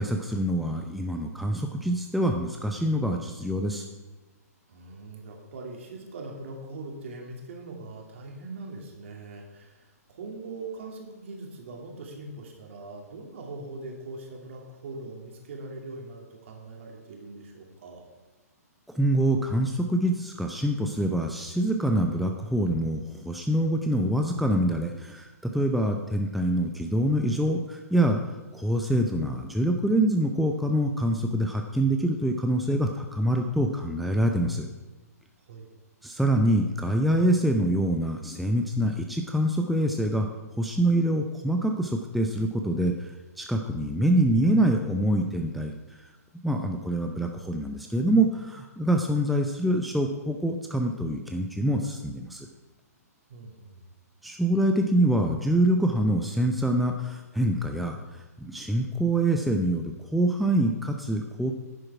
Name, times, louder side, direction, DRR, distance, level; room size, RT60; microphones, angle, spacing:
voice 1, 0.0-3.9 18.9-34.7 36.0-40.3 40.6-46.0 46.4-52.5 54.2-61.5, right 1 dB, ahead, 3 dB, 0.5 m, -25 dB
voice 2, 4.7-18.1 35.5-35.7 53.3-53.8, right 2 dB, 50° right, 1 dB, 2.3 m, -41 dB
10.0 x 7.7 x 4.8 m, 1.2 s
figure-of-eight pair, 120°, 9 cm